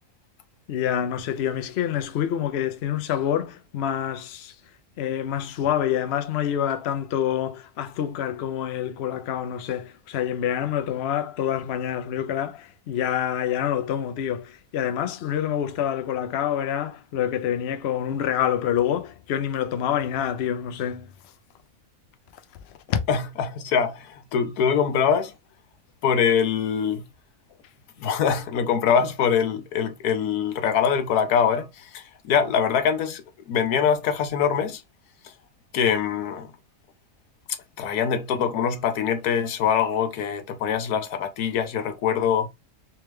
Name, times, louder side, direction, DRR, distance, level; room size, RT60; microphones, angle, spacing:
voice 1, 0.7-4.5 5.0-21.1 22.9-23.0, left 10 dB, 60° left, 0.7 m, -27 dB
voice 2, 23.1-25.3 26.0-27.0 28.0-34.8 35.7-36.5 37.8-42.5, left 7 dB, 85° left, 1.2 m, -23 dB
3.4 x 3.2 x 3.2 m
omnidirectional pair, 1.6 m